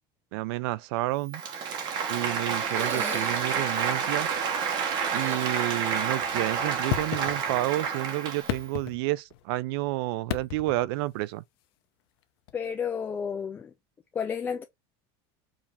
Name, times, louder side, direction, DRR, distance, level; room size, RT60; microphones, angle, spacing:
voice 1, 0.3-1.4 2.1-4.3 5.1-11.4, right 18 dB, 70° right, 0.4 m, -30 dB
Applause, 1.3-8.7, right 6 dB, 35° right, 1.2 m, -29 dB
sound 1, 2.6-4.0 5.1-6.3 6.6-6.7 8.3-8.4, right 4 dB, 15° right, 0.9 m, -41 dB
sound 2, 6.9-7.8 8.3-9.5 10.2-10.9 12.5-12.6, left 14 dB, 75° left, 0.7 m, -34 dB
voice 2, 12.5-13.7 14.1-14.6, left 7 dB, 15° left, 0.4 m, -31 dB
4.9 x 2.8 x 3.3 m
cardioid pair, 175°, 13 cm